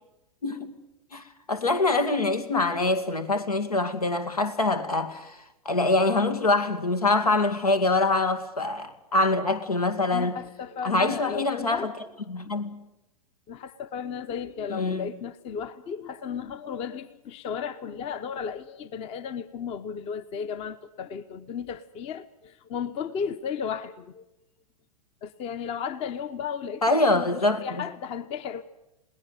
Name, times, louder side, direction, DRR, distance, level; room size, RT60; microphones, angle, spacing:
voice 1, 0.4-0.7 1.1-5.4 5.6-10.4 10.8-11.9 12.3-12.8 14.7-15.1 26.8-27.8, left 2 dB, 85° left, 2.4 m, -24 dB
voice 2, 10.1-11.9 13.5-24.2 25.2-28.6, left 7 dB, 30° left, 1.0 m, -34 dB
21.5 x 18.0 x 9.1 m
figure-of-eight pair, 105°, 19 cm